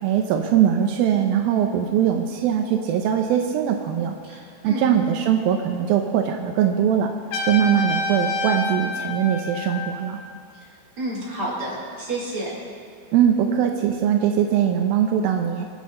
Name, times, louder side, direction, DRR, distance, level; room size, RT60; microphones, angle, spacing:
voice 1, 0.0-4.1 4.6-7.1 7.4-10.2 13.1-15.6, right 9 dB, 85° right, 3 dB, 2.1 m, -21 dB
voice 2, 4.3-4.8 10.6-12.5, right 1 dB, 20° right, -7 dB, 4.4 m, -31 dB
Trumpet, 7.3-10.2, left 3 dB, 75° left, 4.5 m, -28 dB
25.5 x 9.3 x 4.3 m, 2.3 s
omnidirectional pair, 5.2 m